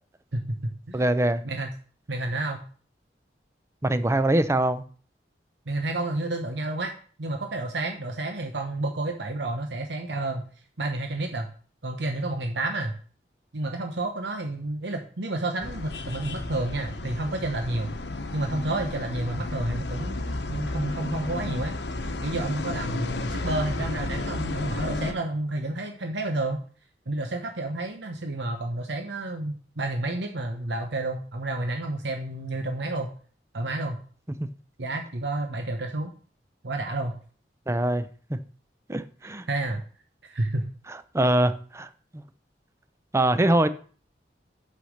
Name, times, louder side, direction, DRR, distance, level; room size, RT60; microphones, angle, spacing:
voice 1, 0.3-1.0 1.4-1.7 2.1-2.6 5.7-6.9 7.2-10.4 10.8-11.5 11.8-12.9 13.5-17.9 18.3-21.7 22.0-26.6 27.1-33.1 33.5-34.0 34.8-36.1 36.6-37.2 39.5-39.8 40.2-40.7, right 2 dB, 80° right, 1.0 m, -30 dB
voice 2, 0.9-1.4 3.8-4.8 34.4-34.5 37.7-38.4 38.9-39.4 40.9-42.2 43.1-43.7, right 1 dB, 15° right, 0.5 m, -24 dB
sound 1, 15.6-25.1, left 2 dB, 70° left, 0.9 m, -32 dB
6.3 x 5.7 x 6.4 m
head